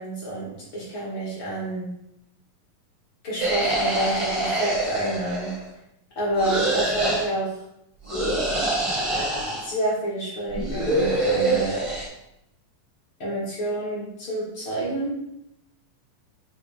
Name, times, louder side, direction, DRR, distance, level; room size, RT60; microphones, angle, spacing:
voice 1, 0.0-1.9 3.2-5.5 6.1-7.6 9.6-11.8 13.2-15.2, right 1 dB, 40° left, -7 dB, 2.9 m, -28 dB
sound 1, 3.4-5.7 6.4-7.2 8.1-9.7 10.5-12.1, right 2 dB, 30° right, 0.5 m, -25 dB
7.4 x 4.7 x 3.7 m, 0.80 s
omnidirectional pair, 4.0 m